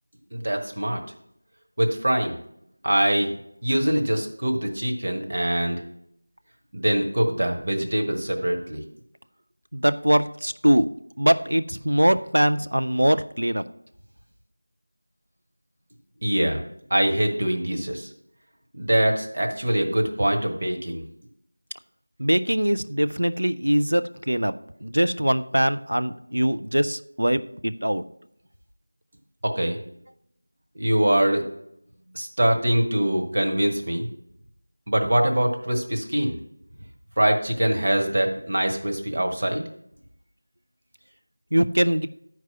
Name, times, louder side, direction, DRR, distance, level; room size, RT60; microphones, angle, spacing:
voice 1, 0.3-1.0 1.8-2.3 2.8-3.3 3.6-5.8 6.7-8.8 16.2-16.6 16.9-18.1 18.8-21.0 29.4-29.8 30.7-31.4 32.1-34.1 34.9-36.4 37.2-39.6, right 1 dB, 45° right, 2 dB, 1.3 m, -23 dB
voice 2, 9.7-10.9 11.2-13.6 22.2-24.5 24.8-28.0 41.5-42.1, equal, 70° right, 10 dB, 0.5 m, -22 dB
10.5 x 4.7 x 5.7 m, 0.75 s
figure-of-eight pair, 170°, 0 cm